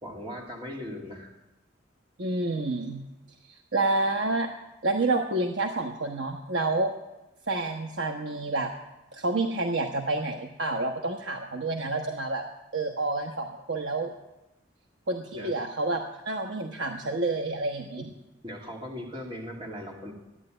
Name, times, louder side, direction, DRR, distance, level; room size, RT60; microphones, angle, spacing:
voice 1, 0.0-1.3 15.3-15.5 18.0-18.1 18.4-20.1, equal, 25° right, -1 dB, 2.5 m, -39 dB
voice 2, 2.2-3.0 3.5-4.5 4.8-6.9 7.5-8.7 9.1-12.4 12.7-14.1 15.1-18.0, right 2 dB, 70° right, 2 dB, 1.1 m, -29 dB
14.0 x 9.8 x 9.0 m, 0.96 s
head